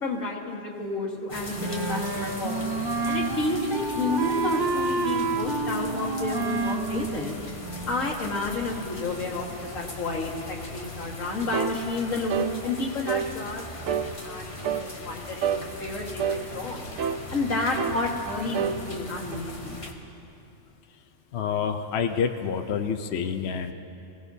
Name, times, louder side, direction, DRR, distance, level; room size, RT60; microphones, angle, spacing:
voice 1, 0.0-2.7 3.0-7.3 7.9-9.4 9.7-13.6 14.0-16.8 17.3-19.8, left 2 dB, 90° left, -1 dB, 2.0 m, -31 dB
sound 1, 1.3-19.9, left 2 dB, 25° left, 1.1 m, -39 dB
Wind instrument woodwind instrument, 1.6-8.2, right 3 dB, 30° right, 0.4 m, -29 dB
sound 2, 11.5-11.8 12.3-12.5 13.1-13.3 13.9-14.1 14.6-14.9 15.4-15.7 16.2-16.4 17.0-17.2 17.8-18.0 18.5-18.8 19.3-19.4, right 8 dB, 85° right, 1.1 m, -27 dB
voice 2, 21.3-23.7, left 7 dB, 65° left, 6 dB, 0.9 m, -28 dB
26.5 x 17.0 x 2.7 m, 2.7 s
omnidirectional pair, 1.3 m